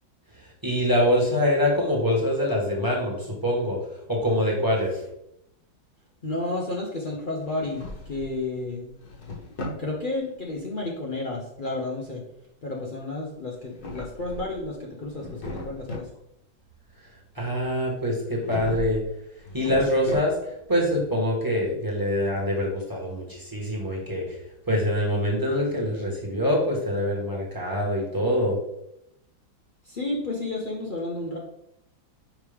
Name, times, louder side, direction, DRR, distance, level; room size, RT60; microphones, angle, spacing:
voice 1, 0.4-3.8 4.1-5.0 17.3-19.0 19.5-20.4 20.7-24.3 24.7-28.6, left 1 dB, 10° right, -2 dB, 1.2 m, -24 dB
voice 2, 6.2-9.0 9.7-12.2 12.6-16.1 29.8-31.4, left 2 dB, 85° left, -2 dB, 0.4 m, -31 dB
Drawer open or close, 7.4-8.4 8.8-9.9 13.5-14.7 15.0-16.2 18.3-19.0 19.4-20.6, left 2 dB, 55° left, 1.6 m, -37 dB
6.3 x 4.8 x 3.5 m, 0.78 s
omnidirectional pair, 2.2 m